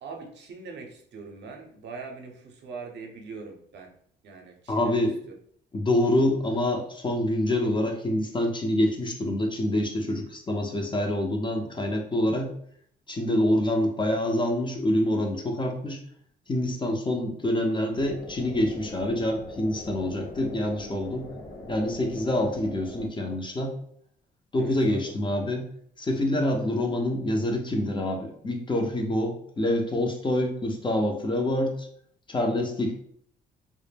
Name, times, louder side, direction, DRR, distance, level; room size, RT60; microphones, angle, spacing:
voice 1, 0.0-3.9 4.2-5.0 5.3-5.4 24.6-25.1 26.3-26.4, right 4 dB, 60° right, 2 dB, 0.6 m, -42 dB
voice 2, 4.7-5.2 5.7-12.5 13.1-16.0 16.5-21.3 21.7-23.8 24.5-25.7 26.0-31.9 32.3-32.9, left 1 dB, 25° left, 2 dB, 0.5 m, -26 dB
sound 1, 17.9-23.1, left 2 dB, 80° left, 0.7 m, -42 dB
2.0 x 2.0 x 3.3 m, 0.63 s
cardioid pair, 90°, 20 cm